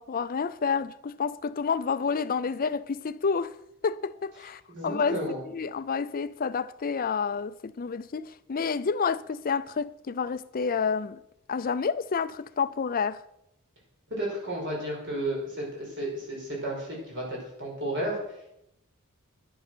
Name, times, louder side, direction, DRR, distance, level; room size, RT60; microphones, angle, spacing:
voice 1, 0.0-3.5 3.8-5.2 5.5-11.2 11.5-13.2, left 5 dB, 40° left, 0.5 m, -29 dB
voice 2, 4.7-5.4 14.1-18.2, right 1 dB, 55° right, 5.3 m, -33 dB
10.0 x 10.0 x 6.1 m
head